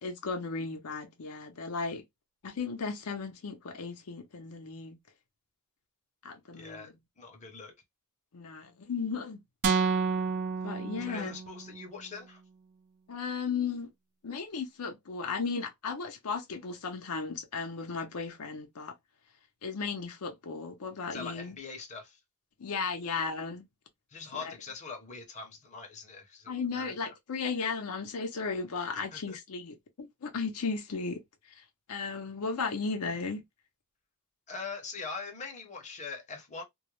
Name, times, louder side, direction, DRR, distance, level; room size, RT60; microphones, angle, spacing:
voice 1, 0.0-2.0 2.4-5.0 6.2-6.9 8.3-9.4 10.6-11.3 13.1-13.9 14.2-18.9 19.6-21.5 22.6-23.6 24.3-24.5 26.5-31.2 31.5-33.4, left 4 dB, 80° left, 0.6 m, -35 dB
voice 2, 6.5-7.7 11.0-12.4 21.1-22.2 24.1-27.1 28.9-29.4 34.5-36.6, left 4 dB, 30° left, 0.7 m, -43 dB
sound 1, 9.6-11.7, right 5 dB, 50° right, 0.4 m, -29 dB
2.3 x 2.1 x 3.0 m
head